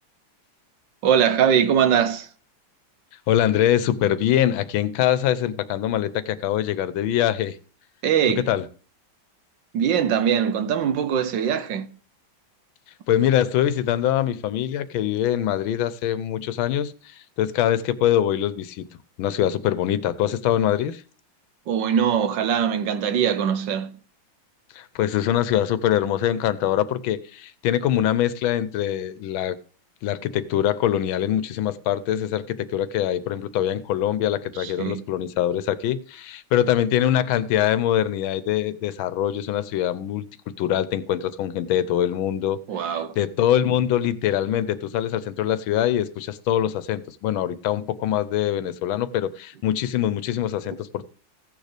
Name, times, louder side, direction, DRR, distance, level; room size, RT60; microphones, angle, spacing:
voice 1, 1.0-2.3 8.0-8.5 9.7-11.9 21.7-23.9 34.6-35.0 42.7-43.1, right 8 dB, 70° right, 1.4 m, -21 dB
voice 2, 3.3-7.6 8.5-8.7 13.1-18.9 19.2-21.0 24.7-29.6 30.0-40.3 40.6-51.0, left 11 dB, 85° left, 1.5 m, -23 dB
16.0 x 6.5 x 3.3 m
omnidirectional pair, 2.2 m